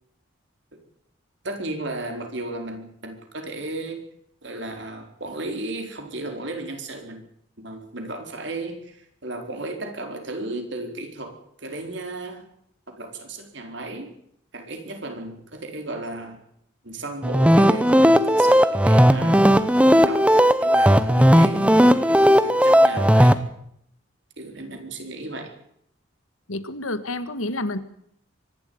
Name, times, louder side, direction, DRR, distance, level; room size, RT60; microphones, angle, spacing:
voice 1, 1.4-4.0 4.4-7.3 7.6-12.4 12.9-14.1 14.5-16.4 16.8-19.5 19.8-20.3 20.6-23.4 24.4-25.5, right 2 dB, 60° right, 4 dB, 4.3 m, -34 dB
sound 1, 17.2-23.4, equal, 5° right, 0.9 m, -16 dB
voice 2, 26.5-27.8, left 2 dB, 90° left, 12 dB, 1.7 m, -29 dB
24.0 x 12.0 x 9.5 m, 0.71 s
head